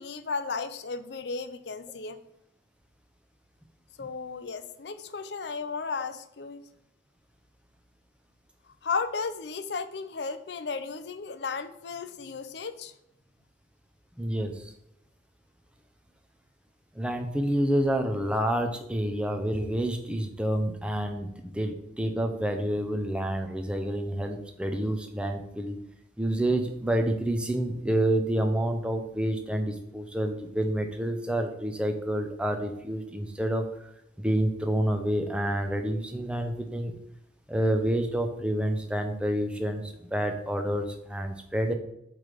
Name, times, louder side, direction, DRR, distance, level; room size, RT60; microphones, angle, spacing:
voice 1, 0.0-2.2 4.0-6.6 8.8-12.9, left 4 dB, 65° left, 11 dB, 0.6 m, -34 dB
voice 2, 14.2-14.7 16.9-25.8 26.2-33.9 34.2-36.9 37.5-41.7, right 1 dB, 5° right, 4 dB, 0.7 m, -28 dB
7.8 x 3.4 x 5.1 m, 0.81 s
head